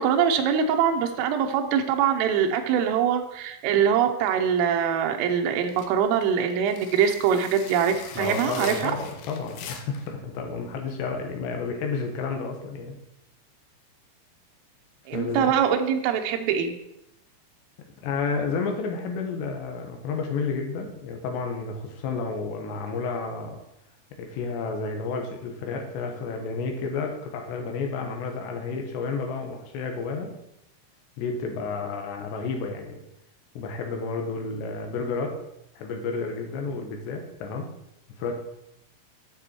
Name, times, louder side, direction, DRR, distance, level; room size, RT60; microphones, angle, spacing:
voice 1, 0.0-8.9 15.1-16.8, right 8 dB, 90° right, 4 dB, 3.4 m, -23 dB
sound 1, 5.6-10.1, left 8 dB, 90° left, 3.4 m, -42 dB
voice 2, 8.2-13.0 15.1-15.5 18.0-23.6 24.2-30.3 31.2-33.0 33.6-35.4 35.8-37.7 38.2-38.3, left 4 dB, 70° left, 3 dB, 3.1 m, -31 dB
9.6 x 7.0 x 4.4 m, 0.83 s
omnidirectional pair, 5.7 m